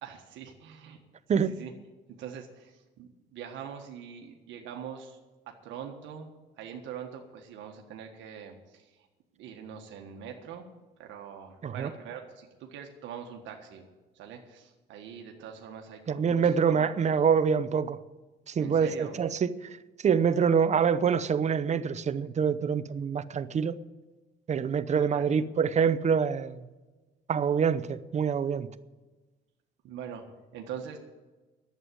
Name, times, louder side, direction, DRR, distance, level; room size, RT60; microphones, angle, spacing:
voice 1, 0.0-1.0 1.5-1.7 2.1-5.2 5.6-6.3 6.6-9.1 9.4-10.7 11.0-13.9 14.1-17.3 18.6-19.2 24.9-25.3 25.6-25.8 29.8-30.2 30.5-31.0, right 8 dB, 85° right, 1.5 m, -43 dB
voice 2, 16.1-18.0 18.5-19.5 20.0-23.8 24.5-26.6 27.3-28.7, right 6 dB, 40° right, 0.7 m, -25 dB
11.0 x 8.1 x 9.6 m
cardioid pair, 110°, 19 cm